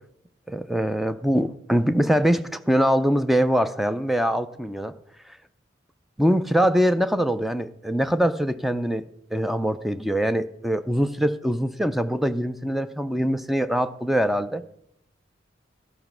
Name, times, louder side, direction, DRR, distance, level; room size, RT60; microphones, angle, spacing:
voice 1, 0.5-4.9 6.2-9.0 9.3-14.6, equal, ahead, 11 dB, 0.4 m, -23 dB
13.5 x 5.5 x 5.9 m, 0.75 s
head